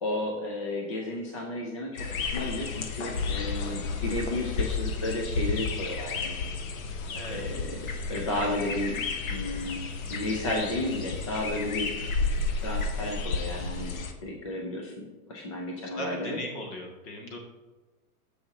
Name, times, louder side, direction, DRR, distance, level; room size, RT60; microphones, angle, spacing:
voice 1, 0.0-6.4 7.3-7.8 8.1-9.8 10.1-11.9 12.6-16.4, left 1 dB, 25° left, -1 dB, 0.3 m, -33 dB
sound 1, 2.0-14.1, left 4 dB, 60° left, 1.1 m, -32 dB
voice 2, 15.9-17.4, left 1 dB, 40° left, 0 dB, 2.0 m, -38 dB
9.5 x 6.9 x 2.8 m, 1.1 s
supercardioid pair, 160°, 45 cm